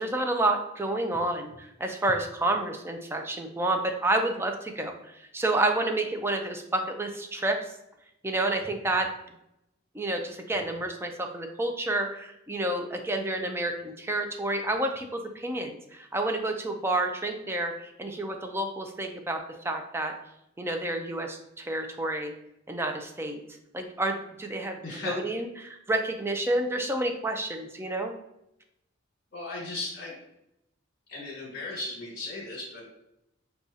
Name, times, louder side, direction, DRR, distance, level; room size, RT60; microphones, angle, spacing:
voice 1, 0.0-7.6 8.2-9.1 9.9-20.1 20.6-22.3 22.7-23.4 23.7-28.1, right 2 dB, 10° right, 4 dB, 0.4 m, -29 dB
voice 2, 24.8-25.2 29.3-30.1 31.1-32.8, left 2 dB, 60° left, -4 dB, 1.2 m, -36 dB
6.1 x 2.3 x 2.7 m, 0.82 s
head